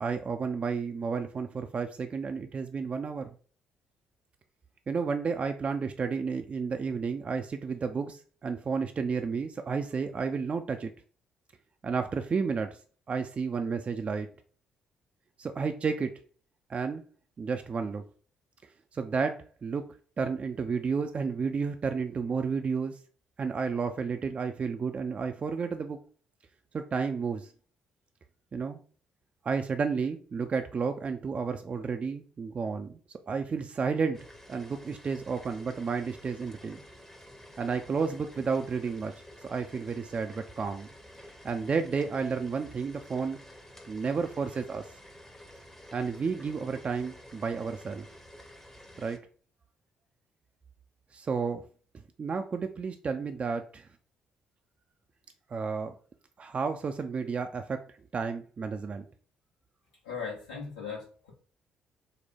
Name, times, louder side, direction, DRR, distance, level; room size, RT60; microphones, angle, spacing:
voice 1, 0.0-3.3 4.9-10.9 11.8-12.8 13.1-14.3 15.4-16.1 16.7-17.0 17.4-18.0 18.9-19.8 20.2-23.0 23.4-26.0 26.7-27.5 28.5-28.8 29.4-36.8 37.6-40.9 41.4-43.4 43.9-44.8 45.9-48.1 49.0-49.2 51.1-51.6 52.2-53.9 55.5-55.9 56.4-59.1, right 5 dB, 35° right, 6 dB, 0.4 m, -32 dB
sound 1, 34.1-49.2, equal, 10° left, 0.8 m, -51 dB
voice 2, 60.0-61.3, left 5 dB, 75° left, -3 dB, 1.2 m, -38 dB
4.4 x 2.1 x 3.4 m, 0.41 s
figure-of-eight pair, 45°, 4 cm